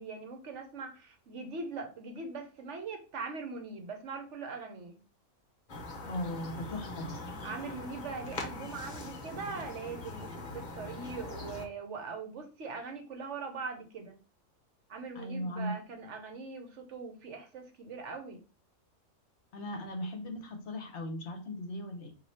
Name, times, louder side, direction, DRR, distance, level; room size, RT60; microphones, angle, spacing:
voice 1, 0.0-5.0 7.4-14.2 14.9-18.4, right 4 dB, 65° right, 5 dB, 1.1 m, -41 dB
sound 1, 5.7-11.7, left 2 dB, 40° left, 0.8 m, -42 dB
voice 2, 6.0-7.2 15.1-15.8 19.5-22.1, left 1 dB, 60° left, 5 dB, 1.0 m, -38 dB
4.7 x 2.7 x 4.2 m, 0.35 s
omnidirectional pair, 1.4 m